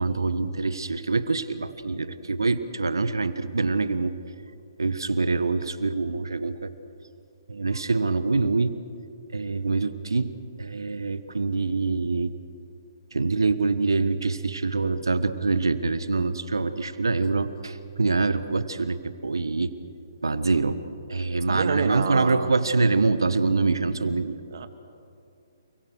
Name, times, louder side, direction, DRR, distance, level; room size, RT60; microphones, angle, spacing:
voice 1, 0.0-4.2 4.8-6.7 7.5-8.8 9.3-10.3 10.6-12.3 13.1-19.7 20.2-20.8 21.1-24.4, right 3 dB, 80° right, 12 dB, 1.3 m, -25 dB
voice 2, 21.5-22.5 24.5-24.7, right 6 dB, 60° right, 8 dB, 2.4 m, -28 dB
28.5 x 22.0 x 6.6 m, 2.5 s
figure-of-eight pair, 135°, 2 cm